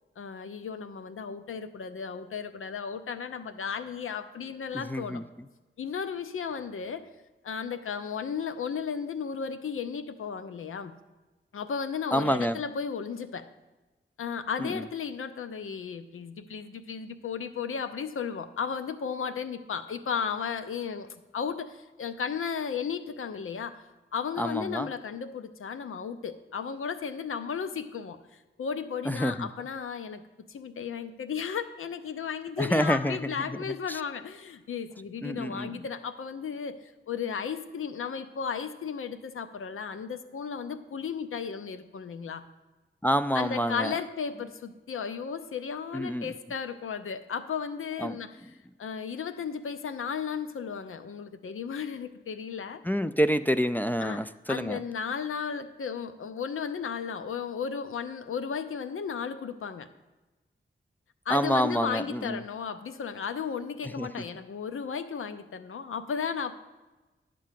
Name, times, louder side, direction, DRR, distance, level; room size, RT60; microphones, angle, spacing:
voice 1, 0.2-5.2 5.8-7.1 7.4-10.9 11.5-13.5 14.2-23.8 24.1-28.2 28.6-30.2 30.5-42.4 43.3-48.3 48.8-52.8 54.0-54.2 54.5-59.9 61.3-66.5, left 6 dB, 85° left, 10 dB, 0.6 m, -34 dB
voice 2, 4.7-5.2 12.1-12.6 14.6-14.9 24.4-24.9 29.0-29.5 32.6-34.0 35.2-35.8 43.0-44.0 45.9-46.3 48.0-48.2 52.8-54.8 61.3-62.4 63.8-64.1, equal, 10° left, 8 dB, 0.3 m, -28 dB
11.0 x 3.8 x 7.5 m, 1.2 s
cardioid pair, 70°, 21 cm